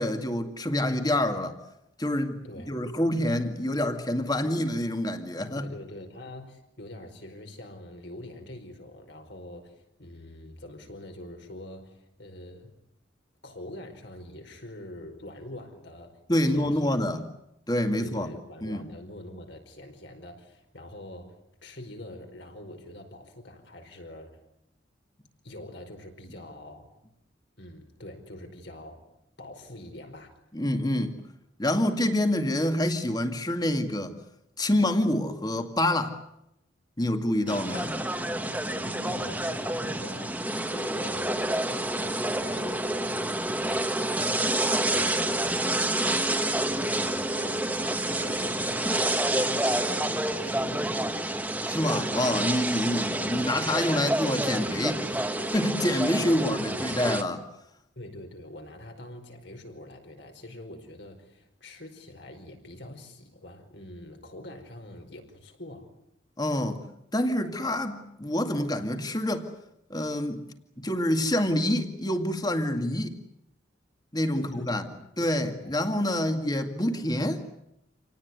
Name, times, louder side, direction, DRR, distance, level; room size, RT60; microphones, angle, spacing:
voice 1, 0.0-1.6 2.0-2.4 2.7-5.7 16.3-17.2 17.7-18.3 18.6-18.8 30.5-31.1 31.6-34.2 34.6-36.2 37.0-38.0 51.7-55.1 55.4-57.4 66.4-66.8 67.1-69.5 69.9-70.4 70.8-73.2 74.1-74.8 75.2-77.4, left 1 dB, 20° left, 7 dB, 2.1 m, -27 dB
voice 2, 2.4-2.7 5.5-12.7 13.4-17.3 17.9-21.4 21.6-24.4 25.4-26.9 27.6-29.1 29.4-30.4 37.7-37.9 38.4-44.5 44.8-45.6 46.4-50.9 53.0-54.3 56.3-57.0 57.9-65.9 74.4-74.8 75.2-75.9 76.2-76.4, left 1 dB, 65° left, 4 dB, 5.1 m, -44 dB
sound 1, 37.5-57.2, right 1 dB, 10° right, 1.6 m, -28 dB
27.5 x 18.5 x 9.7 m, 0.81 s
head